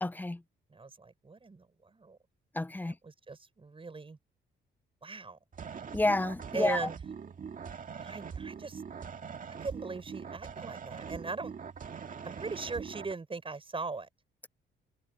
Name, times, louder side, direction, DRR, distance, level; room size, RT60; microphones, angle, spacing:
voice 1, 0.0-0.4 2.6-2.9 5.9-6.8, left 2 dB, 10° left, 0.6 m, -29 dB
voice 2, 0.7-2.2 2.8-4.2 5.0-5.4 6.5-7.0 8.0-8.8 9.6-11.5 12.2-14.1, right 4 dB, 25° right, 6.3 m, -39 dB
sound 1, 5.5-13.1, right 6 dB, 45° right, 2.0 m, -43 dB
cardioid pair, 90°, 20 cm